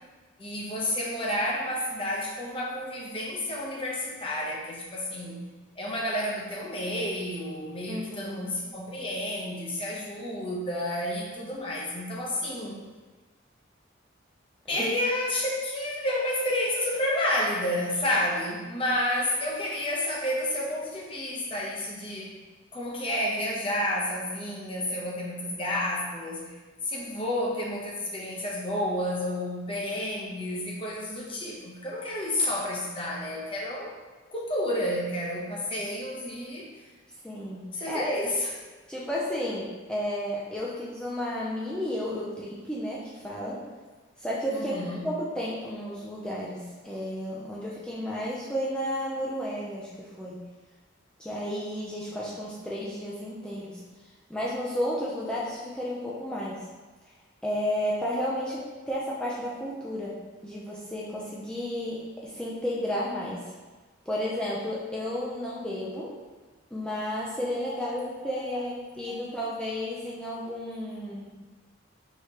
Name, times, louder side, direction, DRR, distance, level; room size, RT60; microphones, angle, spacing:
voice 1, 0.4-5.5 5.8-12.8 14.7-22.3 22.7-26.5 26.8-33.9 34.3-36.7 37.7-38.6 44.5-45.0 67.8-67.9 68.5-68.6 69.1-69.4, left 1 dB, 25° left, -4 dB, 0.7 m, -30 dB
voice 2, 7.9-8.5 14.7-14.9 37.2-38.0 38.9-43.6 44.2-44.7 45.0-50.4 51.2-53.8 54.3-56.7 57.4-63.5 64.1-66.2 66.7-71.3, equal, 5° left, -7 dB, 0.4 m, -32 dB
4.8 x 3.2 x 2.9 m, 1.3 s
head